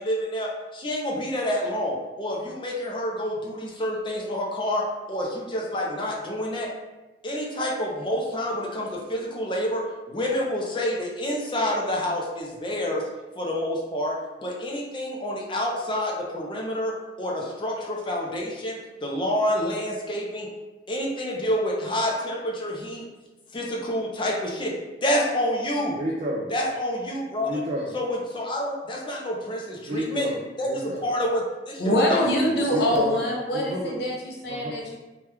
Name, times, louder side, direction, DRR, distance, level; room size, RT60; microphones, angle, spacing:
voice 1, 0.0-6.7 7.2-13.1 13.4-20.5 20.9-23.0 23.5-24.7 25.0-26.0 26.5-27.6 27.9-30.3 30.6-32.6, left 1 dB, 30° left, -2 dB, 0.5 m, -28 dB
voice 2, 26.0-26.5 27.4-27.9 29.8-31.0 32.6-33.2 33.5-33.9 34.5-34.8, equal, 35° right, -3 dB, 0.4 m, -30 dB
voice 3, 31.8-35.0, equal, 65° left, -2 dB, 0.8 m, -24 dB
3.0 x 2.3 x 3.2 m, 1.1 s
head